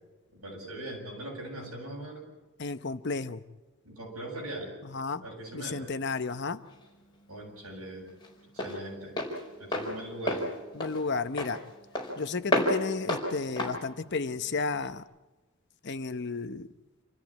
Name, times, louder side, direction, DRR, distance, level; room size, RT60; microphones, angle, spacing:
voice 1, 0.3-2.3 3.8-4.7 5.2-5.9 7.3-8.1 8.5-9.2 9.6-10.5, right 1 dB, 80° right, -1 dB, 7.7 m, -40 dB
voice 2, 2.6-3.4 4.8-5.2 5.5-6.6 10.7-11.6 12.2-15.0 15.8-16.7, left 4 dB, 50° left, 11 dB, 0.9 m, -32 dB
Walk footsteps, 6.3-15.0, left 1 dB, 20° left, 4.7 m, -33 dB
27.5 x 14.0 x 8.7 m, 1.2 s
head